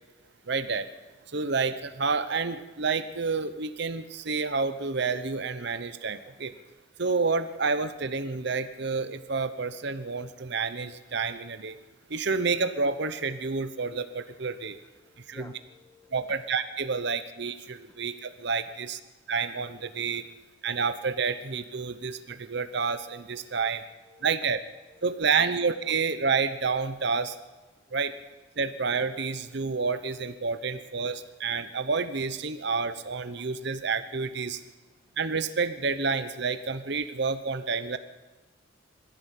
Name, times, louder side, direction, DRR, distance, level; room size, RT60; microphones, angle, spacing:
voice 1, 0.5-0.9 1.3-6.5 7.0-11.8 12.1-14.8 15.3-15.5 16.1-19.0 19.3-20.2 20.6-23.8 24.2-24.6 25.0-27.4 27.9-28.1 28.6-34.6 35.2-38.0, right 4 dB, 60° right, 11 dB, 0.9 m, -29 dB
voice 2, 15.0-16.4 23.6-23.8 24.0-24.4 24.9-25.4, left 1 dB, 15° left, 7 dB, 1.6 m, -53 dB
21.5 x 15.5 x 8.5 m, 1.2 s
head